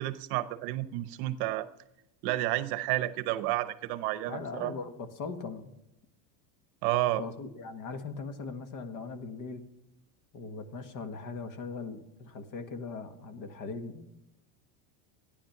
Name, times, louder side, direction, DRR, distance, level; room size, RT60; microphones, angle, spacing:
voice 1, 0.0-1.7 2.2-4.7 6.8-7.2, right 16 dB, 55° right, 14 dB, 0.9 m, -30 dB
voice 2, 4.3-5.7 7.2-9.6 10.3-14.1, left 4 dB, 45° left, 9 dB, 1.6 m, -40 dB
15.0 x 10.0 x 5.9 m, 0.87 s
supercardioid pair, 150°, 48 cm